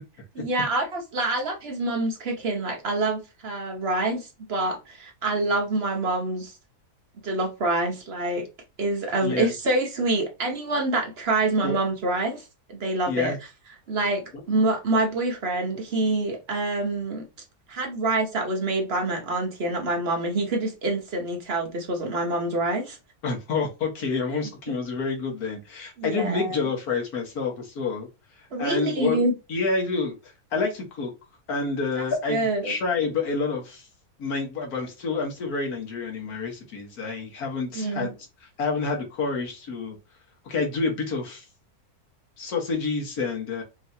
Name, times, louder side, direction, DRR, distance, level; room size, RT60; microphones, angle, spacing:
voice 1, 0.3-6.5 7.2-8.5 8.8-13.3 13.9-17.2 17.7-23.0 26.0-26.6 28.5-29.3 32.0-32.7 37.7-38.1, right 2 dB, 45° right, 1.0 m, -26 dB
voice 2, 9.2-9.5 11.6-11.8 13.1-13.4 14.3-14.4 23.2-28.1 28.6-29.2 29.5-31.1 31.5-33.9 34.2-38.1 38.4-40.0 40.4-41.4 42.4-43.6, left 4 dB, 75° left, 1.8 m, -28 dB
4.6 x 3.1 x 2.7 m
omnidirectional pair, 1.6 m